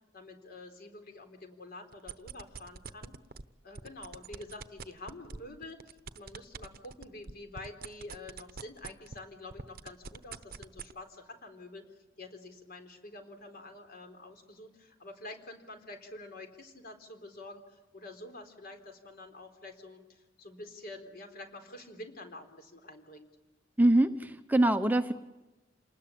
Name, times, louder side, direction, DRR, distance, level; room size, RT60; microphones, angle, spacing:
voice 1, 0.1-3.1 3.6-11.8 12.2-23.3, left 2 dB, 50° left, 6 dB, 4.0 m, -47 dB
sound 1, 1.9-3.4 3.7-9.2 9.5-10.9, right 5 dB, 50° right, 1.0 m, -43 dB
voice 2, 23.8-25.1, right 1 dB, 10° right, 8 dB, 0.9 m, -24 dB
28.0 x 20.0 x 8.7 m, 1.1 s
head